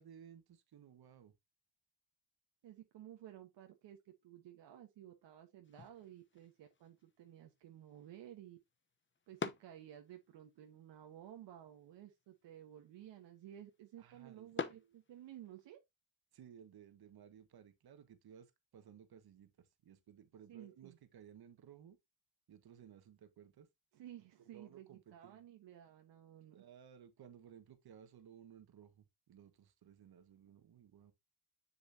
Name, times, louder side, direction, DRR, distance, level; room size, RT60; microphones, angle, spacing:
voice 1, 0.0-1.3 14.0-14.9 16.3-22.0 22.5-23.7 24.5-25.4 26.5-31.1, right 8 dB, 55° right, 1.7 m, -59 dB
voice 2, 2.6-8.6 9.3-15.8 20.5-21.0 23.9-26.6, right 11 dB, 75° right, 1.5 m, -55 dB
sound 1, 5.6-15.7, left 5 dB, 25° left, 0.9 m, -50 dB
7.1 x 6.9 x 2.8 m
cardioid pair, 85°, 44 cm